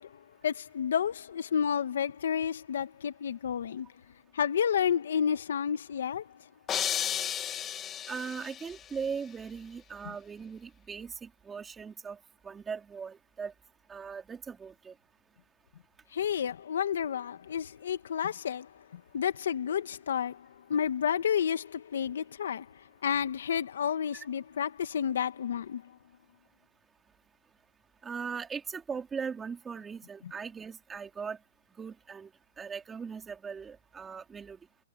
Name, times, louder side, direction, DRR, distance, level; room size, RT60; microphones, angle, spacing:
voice 1, 0.0-3.9 4.3-6.3 10.1-10.2 16.1-25.9, left 8 dB, 65° left, 1.9 m, -31 dB
sound 1, 6.7-8.8, left 9 dB, 15° left, 2.5 m, -33 dB
voice 2, 8.1-13.5 13.9-14.9 24.1-24.3 28.0-31.4 31.8-32.3 32.6-34.6, right 6 dB, 10° right, 4.0 m, -39 dB
hypercardioid pair, 170°, 0 cm